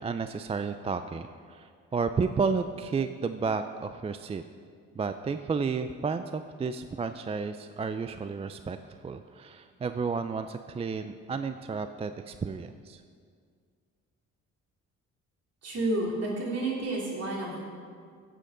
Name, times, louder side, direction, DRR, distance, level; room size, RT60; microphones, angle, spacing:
voice 1, 0.0-4.4 5.0-8.8 9.0-13.0, right 5 dB, 20° right, 9 dB, 0.3 m, -32 dB
voice 2, 15.6-17.6, right 2 dB, 55° right, -3 dB, 3.3 m, -30 dB
15.5 x 7.6 x 3.8 m, 2.1 s
cardioid pair, 90°, 30 cm